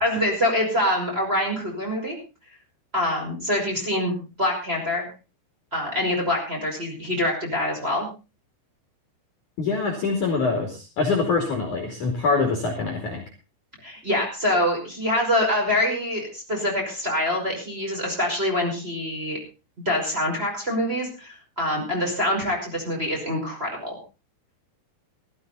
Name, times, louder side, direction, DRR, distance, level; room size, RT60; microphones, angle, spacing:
voice 1, 0.0-2.2 2.9-5.1 5.7-8.1 13.8-19.4 19.9-24.0, left 1 dB, 10° right, -1 dB, 5.4 m, -25 dB
voice 2, 9.6-13.2, left 4 dB, 45° left, 3 dB, 3.3 m, -24 dB
17.0 x 14.0 x 4.1 m, 0.32 s
omnidirectional pair, 5.9 m